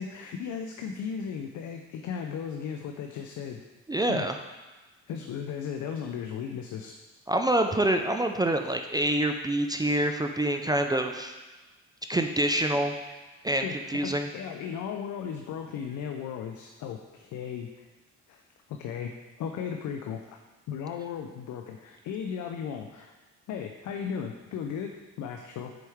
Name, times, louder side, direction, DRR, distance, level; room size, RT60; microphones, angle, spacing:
voice 1, 0.0-3.6 4.1-4.3 5.1-6.9 13.6-13.8 14.0-17.9 18.3-18.4 18.7-20.4 20.7-23.1 23.5-25.7, left 7 dB, 75° left, 4 dB, 0.6 m, -36 dB
voice 2, 3.9-4.3 7.3-11.4 12.1-12.9 13.4-14.3, right 1 dB, 15° right, 5 dB, 0.4 m, -26 dB
7.8 x 4.5 x 3.5 m, 1.2 s
cardioid pair, 90°, 30 cm